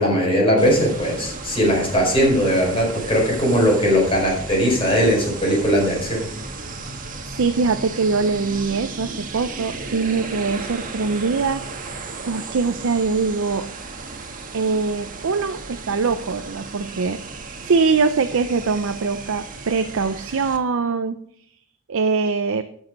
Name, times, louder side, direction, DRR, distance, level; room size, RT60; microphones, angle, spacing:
voice 1, 0.0-6.3, equal, 25° left, -2 dB, 4.5 m, -19 dB
sound 1, 0.6-20.6, right 3 dB, 40° right, 1.4 m, -35 dB
voice 2, 7.3-11.6 11.9-13.7 14.5-17.2 17.6-21.2 21.9-22.6, right 4 dB, 65° right, 8 dB, 0.5 m, -22 dB
12.5 x 6.3 x 5.2 m, 0.66 s
head